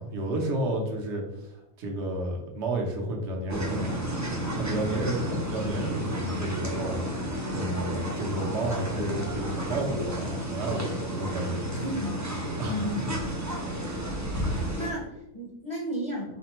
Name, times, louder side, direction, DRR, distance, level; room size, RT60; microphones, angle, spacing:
voice 1, 0.0-3.9 4.6-11.7 12.6-13.1 14.5-14.7, right 2 dB, 60° right, 1 dB, 1.1 m, -32 dB
sound 1, 3.5-14.9, equal, 25° right, 0.3 m, -32 dB
voice 2, 11.7-12.2 12.7-13.1 14.5-16.4, equal, 30° left, -2 dB, 0.6 m, -34 dB
4.2 x 4.1 x 3.0 m, 0.89 s
omnidirectional pair, 1.4 m